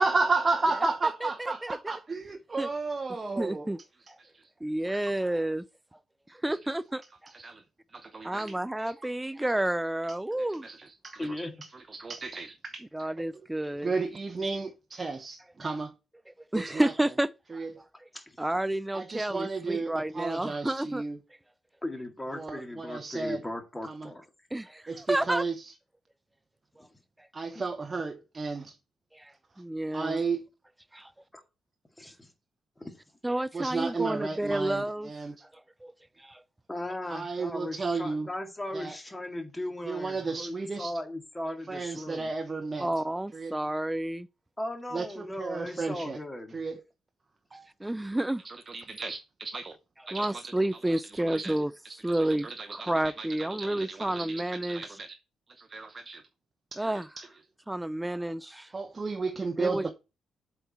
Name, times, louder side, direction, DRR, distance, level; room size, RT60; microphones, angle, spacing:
voice 1, 0.0-3.7 4.2-4.5 5.0-5.1 6.5-6.8 7.3-7.6 7.9-8.5 9.4-9.5 10.6-11.4 11.7-12.8 13.2-13.3 13.8-15.9 16.5-16.9 17.5-17.8 18.9-21.2 22.3-23.4 23.9-24.1 24.9-25.7 27.3-28.8 29.9-30.4 33.5-35.4 37.1-38.3 38.7-39.0 39.8-41.0 41.7-42.9 43.3-43.5 44.9-46.2 46.5-46.8 47.5-47.7 48.4-49.7 50.1-50.5 50.9-51.5 52.0-55.1 55.5-56.2 56.7-57.3 58.7-59.9, right 3 dB, 35° right, 0.9 m, -33 dB
voice 2, 1.2-1.9 2.6-2.7 3.4-3.8 4.1-4.2 4.6-5.6 6.3-7.3 8.2-10.7 12.9-13.9 16.5-17.7 18.4-21.0 24.5-25.4 27.2-27.3 29.1-30.2 30.9-31.1 33.2-35.1 35.8-35.9 36.2-36.4 42.8-44.3 47.8-48.4 50.1-51.7 52.0-52.5 52.7-54.8 56.8-57.1 57.7-58.7 59.6-59.9, right 1 dB, 10° right, 0.4 m, -30 dB
voice 3, 11.2-11.5 18.1-18.4 21.8-24.2 26.8-27.0 27.5-27.6 31.3-31.4 32.0-32.3 32.8-33.0 36.7-42.3 44.6-46.6, left 1 dB, 15° left, 2.0 m, -37 dB
7.8 x 4.5 x 4.3 m
hypercardioid pair, 40°, 0 cm